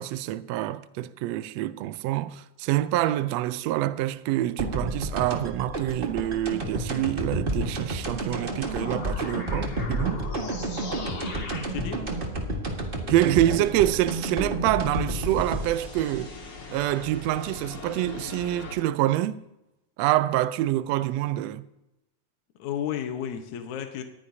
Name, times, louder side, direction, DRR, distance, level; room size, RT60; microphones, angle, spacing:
voice 1, 0.0-10.2 13.1-16.3 16.7-19.4 20.0-21.7, right 14 dB, 80° right, 1.6 m, -26 dB
sound 1, 4.6-17.4, right 1 dB, 30° right, 1.0 m, -31 dB
sound 2, 8.3-18.8, left 4 dB, 40° left, 2.1 m, -40 dB
voice 2, 11.7-12.0 22.6-24.0, left 9 dB, 75° left, 2.4 m, -32 dB
19.5 x 14.5 x 2.8 m
omnidirectional pair, 3.5 m